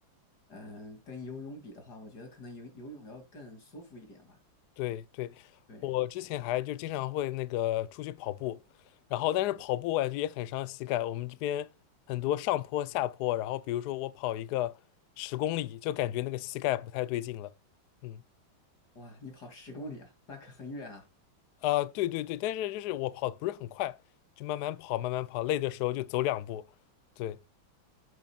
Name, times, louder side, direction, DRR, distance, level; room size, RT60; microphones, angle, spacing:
voice 1, 0.5-4.4 5.7-5.9 18.9-21.1, left 2 dB, 55° left, 3.0 m, -45 dB
voice 2, 4.8-5.5 5.8-8.6 9.1-11.7 12.1-14.8 15.2-17.5 18.0-18.2 21.6-24.0 24.4-26.6 27.2-27.4, left 14 dB, 70° left, 1.0 m, -32 dB
9.3 x 8.2 x 2.3 m
omnidirectional pair, 2.1 m